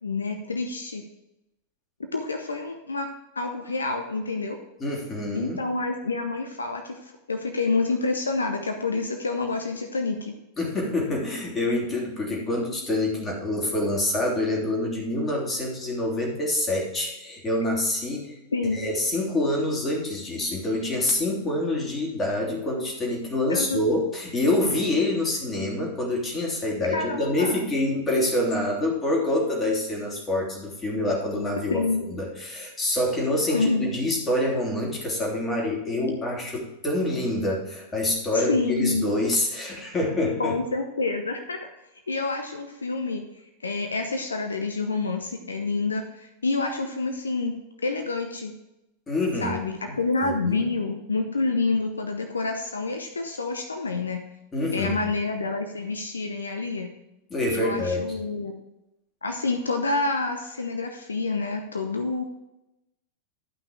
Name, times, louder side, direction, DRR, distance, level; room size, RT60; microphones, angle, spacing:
voice 1, 0.0-1.0 2.0-3.1 3.4-4.6 5.3-10.3 18.5-18.8 23.5-23.8 26.9-27.6 31.7-32.0 33.5-33.9 38.3-39.0 40.4-41.6 42.1-43.2 43.6-47.5 47.8-48.5 49.4-54.2 54.7-56.9 57.5-58.5 59.2-62.2, left 3 dB, 75° left, 5 dB, 0.9 m, -28 dB
voice 2, 4.8-5.6 10.6-18.4 18.7-40.6 49.1-50.7 54.5-55.0 57.3-58.0, left 1 dB, 20° left, -2 dB, 3.1 m, -26 dB
12.0 x 5.8 x 4.8 m, 0.93 s
figure-of-eight pair, 90°, 0 cm